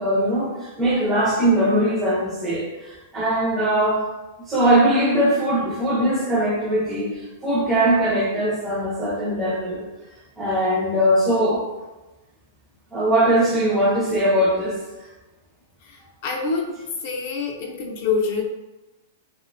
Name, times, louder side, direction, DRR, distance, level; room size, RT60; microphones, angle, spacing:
voice 1, 0.0-4.0 4.5-9.8 10.4-11.6 12.9-14.8, right 1 dB, 10° right, -6 dB, 0.5 m, -21 dB
voice 2, 15.8-16.8 17.0-18.4, left 4 dB, 50° left, 1 dB, 0.4 m, -26 dB
2.5 x 2.1 x 2.5 m, 1.1 s
supercardioid pair, 160°, 0 cm